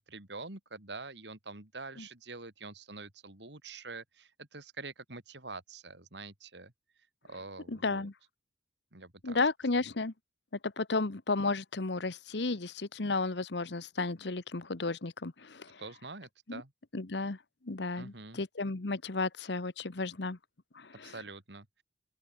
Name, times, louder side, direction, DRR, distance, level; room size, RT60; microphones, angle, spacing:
voice 1, 0.0-6.7 7.3-8.1 8.9-9.4 9.7-9.9 15.8-16.7 18.0-18.4 21.0-21.8, right 3 dB, 70° right, 3.3 m, -46 dB
voice 2, 7.7-8.1 9.2-10.1 10.6-15.7 16.5-16.6 16.9-17.4 17.6-20.4 20.8-21.1, left 3 dB, 70° left, 1.1 m, -33 dB
open air
head